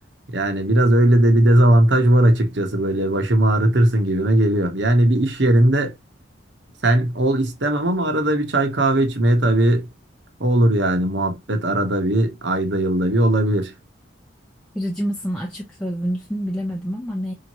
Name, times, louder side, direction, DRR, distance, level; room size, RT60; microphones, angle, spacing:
voice 1, 0.3-5.9 6.8-9.9 10.4-13.7, right 1 dB, 60° right, 1.1 m, -18 dB
voice 2, 14.7-17.3, equal, 5° left, 0.7 m, -27 dB
5.0 x 2.9 x 2.9 m
head